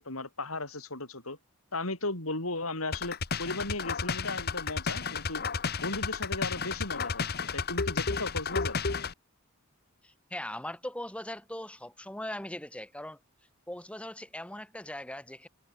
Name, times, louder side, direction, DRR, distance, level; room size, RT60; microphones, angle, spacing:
voice 1, 0.0-1.4 1.7-5.4 5.8-8.8, left 2 dB, 75° left, 7.3 m, -36 dB
sound 1, 2.9-9.1, left 5 dB, 45° left, 1.1 m, -32 dB
voice 2, 10.0-13.2 13.7-15.5, left 1 dB, 5° left, 2.5 m, -40 dB
head